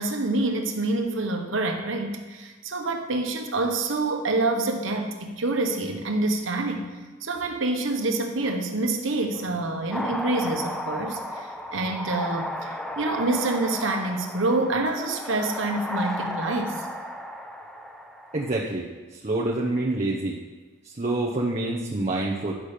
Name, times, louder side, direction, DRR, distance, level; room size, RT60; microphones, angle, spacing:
voice 1, 0.0-6.9 7.2-16.9, right 2 dB, 80° right, 3 dB, 1.2 m, -27 dB
sound 1, 9.9-18.6, equal, 5° left, 0.5 m, -34 dB
voice 2, 18.3-18.8 19.2-20.4 21.0-22.5, right 2 dB, 35° right, -3 dB, 0.8 m, -26 dB
10.0 x 6.3 x 5.1 m, 1.3 s
head